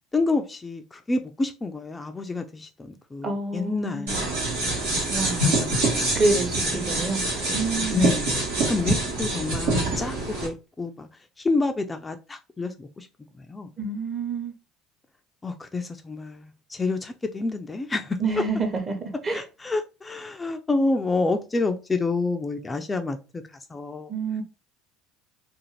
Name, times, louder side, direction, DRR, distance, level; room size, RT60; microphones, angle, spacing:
voice 1, 0.1-4.1 5.4-6.1 6.6-6.9 7.9-8.3 8.6-11.1 11.4-13.1 13.5-13.7 15.4-18.2 19.3-24.1, left 3 dB, 20° left, 0.3 m, -28 dB
voice 2, 3.2-4.2 5.1-5.6 6.1-7.2 7.5-8.0 13.8-14.5 18.2-19.4 24.1-24.4, right 3 dB, 30° right, 0.8 m, -27 dB
sound 1, 4.1-10.5, right 2 dB, 80° right, 1.1 m, -25 dB
2.5 x 2.4 x 3.0 m
hypercardioid pair, 65°, 0 cm